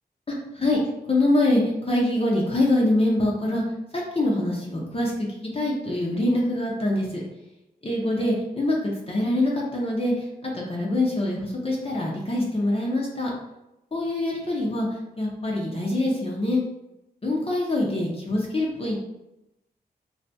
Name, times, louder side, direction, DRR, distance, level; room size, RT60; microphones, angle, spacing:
voice 1, 1.1-3.6 4.1-5.3 5.5-7.2 7.8-10.1 10.4-13.3 13.9-14.9 15.2-16.6 17.2-19.0, left 1 dB, 35° left, -3 dB, 0.7 m, -24 dB
2.7 x 2.4 x 3.3 m, 0.91 s
cardioid pair, 75°, 17 cm